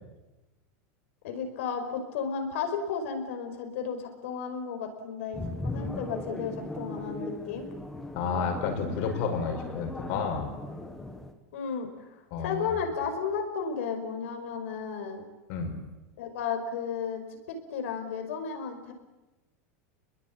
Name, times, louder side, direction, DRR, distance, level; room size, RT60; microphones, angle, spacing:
voice 1, 1.2-7.7 11.5-15.3 16.2-17.2 17.5-18.9, left 6 dB, 65° left, 6 dB, 5.4 m, -33 dB
sound 1, 5.3-11.3, left 2 dB, 5° left, 1.4 m, -38 dB
voice 2, 8.1-10.5 12.3-12.8 15.5-15.8, left 5 dB, 45° left, 5 dB, 5.6 m, -31 dB
27.0 x 21.5 x 8.9 m, 1.1 s
supercardioid pair, 175°, 8 cm